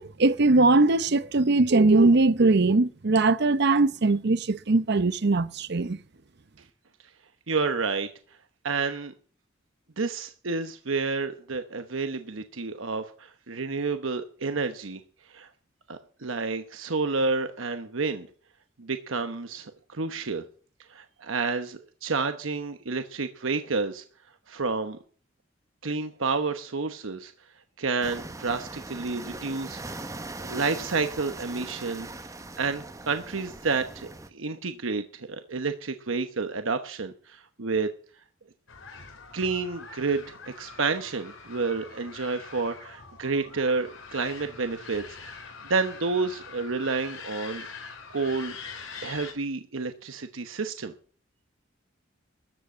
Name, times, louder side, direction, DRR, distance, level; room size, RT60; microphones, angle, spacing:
voice 1, 0.0-6.0, right 3 dB, 55° right, 0.7 m, -21 dB
voice 2, 7.5-8.1 8.6-9.1 10.0-15.0 15.3-15.5 15.9-18.3 18.8-20.5 20.9-24.0 24.5-25.0 25.8-27.3 27.8-30.1 30.4-32.1 32.6-37.9 39.3-47.7 48.1-48.5 49.0-50.9, right 4 dB, 80° right, 1.0 m, -30 dB
sound 1, 28.0-34.3, right 2 dB, 15° right, 0.9 m, -40 dB
sound 2, 38.7-49.3, left 5 dB, 75° left, 3.2 m, -44 dB
13.5 x 7.7 x 8.0 m
head